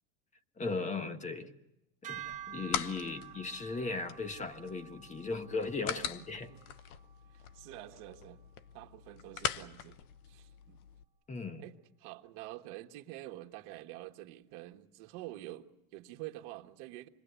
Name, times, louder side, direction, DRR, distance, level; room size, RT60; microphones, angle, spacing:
voice 1, 0.6-1.5 2.0-6.5 11.3-11.6, left 3 dB, 15° left, 1.3 m, -37 dB
sound 1, 2.0-8.4, right 11 dB, 15° right, 1.5 m, -50 dB
sound 2, 2.1-11.0, left 10 dB, 90° left, 1.1 m, -42 dB
voice 2, 6.0-6.6 7.3-8.4 8.7-10.0 10.3-10.8 11.6-17.1, right 16 dB, 60° right, 1.7 m, -47 dB
27.0 x 21.0 x 8.3 m
supercardioid pair, 135°, 43 cm